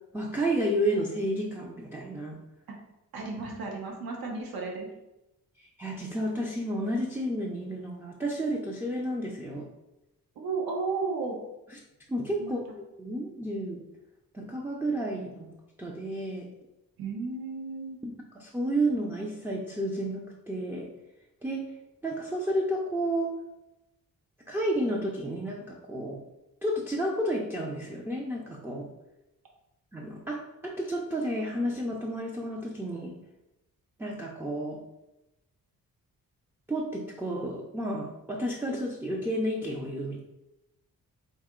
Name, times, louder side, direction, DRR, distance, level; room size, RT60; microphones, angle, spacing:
voice 1, 0.1-2.4 5.6-9.7 12.1-12.6 13.0-13.8 14.3-15.5 15.8-16.5 18.4-20.9 21.4-21.7 22.0-23.3 24.5-26.2 26.6-28.9 29.9-33.1 34.0-34.8 36.7-40.2, right 1 dB, 5° right, -2 dB, 0.4 m, -31 dB
voice 2, 3.1-4.9 10.4-11.4 12.4-12.5 17.0-18.0, right 4 dB, 75° right, 0 dB, 0.9 m, -33 dB
4.1 x 2.9 x 3.6 m, 0.93 s
wide cardioid pair, 160°, 36 cm